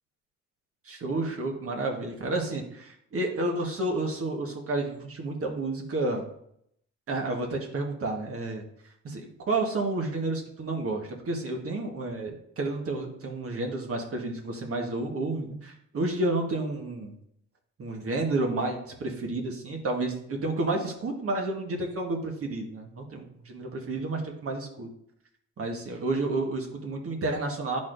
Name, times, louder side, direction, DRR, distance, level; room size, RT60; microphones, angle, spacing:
voice 1, 0.9-6.2 7.1-8.6 9.0-17.1 17.8-24.9 25.6-27.8, right 2 dB, 50° right, 2 dB, 1.4 m, -30 dB
10.5 x 4.2 x 2.6 m, 0.72 s
cardioid pair, 90°, 30 cm